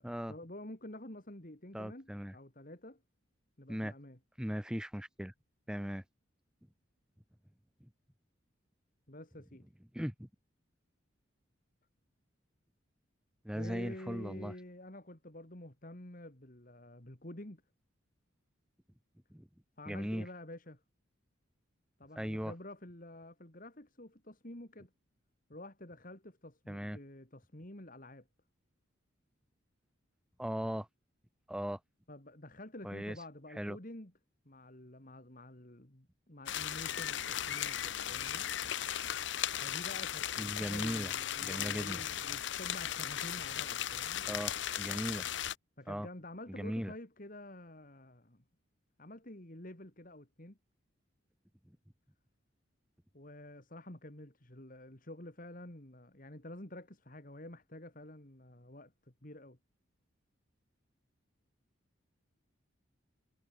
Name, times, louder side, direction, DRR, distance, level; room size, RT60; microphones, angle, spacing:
voice 1, 0.0-3.0 3.6-4.2 9.1-9.7 13.5-17.6 19.8-20.8 22.0-24.9 25.5-28.3 32.1-34.1 34.4-38.5 39.6-44.2 45.8-48.4 49.0-50.6 53.1-59.6, left 1 dB, 40° left, 2.7 m, -49 dB
voice 2, 1.7-2.3 3.7-3.9 4.4-5.3 5.7-6.0 9.9-10.3 13.4-14.5 19.3-19.5 19.9-20.3 22.2-22.5 26.7-27.0 30.4-30.9 31.5-31.8 32.8-33.2 33.6-33.8 40.4-41.1 41.4-42.0 44.3-45.3 45.9-46.1 46.6-46.9, equal, 5° right, 0.7 m, -38 dB
sound 1, 36.5-45.5, left 10 dB, 60° left, 0.7 m, -37 dB
head